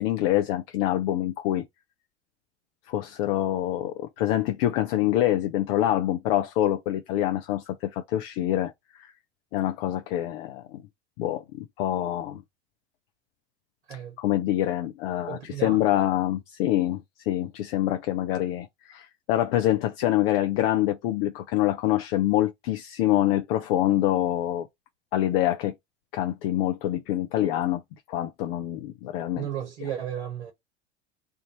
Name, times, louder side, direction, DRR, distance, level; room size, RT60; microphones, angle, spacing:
voice 1, 0.0-1.7 2.9-9.1 9.5-10.8 11.2-12.4 14.2-24.7 25.1-25.7 26.1-27.8 28.1-29.5, left 13 dB, 60° left, 0.7 m, -26 dB
voice 2, 15.3-16.0 29.4-30.5, right 9 dB, 85° right, 1.4 m, -34 dB
3.5 x 2.6 x 4.3 m
hypercardioid pair, 80°, 33 cm